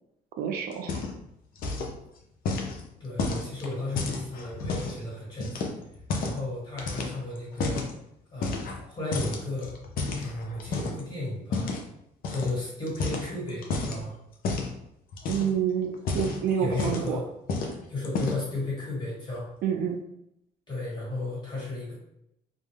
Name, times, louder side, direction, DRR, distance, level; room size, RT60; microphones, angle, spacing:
voice 1, 0.4-1.0 15.3-17.2 19.6-20.0, right 8 dB, 65° right, 3 dB, 0.4 m, -28 dB
sound 1, 0.7-1.3 1.6-2.0 2.5-5.0 5.4-6.4 6.8-7.9 8.4-8.9 9.1-11.0 11.5-11.8 12.2-12.5 12.9-14.0 14.4-14.7 15.1-15.6 15.9-17.2 17.5-17.8 18.0-18.5, left 3 dB, 60° left, 0.5 m, -31 dB
voice 2, 3.0-5.7 6.2-7.8 8.3-8.6 8.9-9.8 10.2-11.8 12.3-14.2 16.5-17.2 17.9-19.5 20.7-21.9, left 2 dB, 25° left, -5 dB, 1.4 m, -34 dB
2.2 x 2.0 x 3.2 m, 0.80 s
cardioid pair, 110°, 17 cm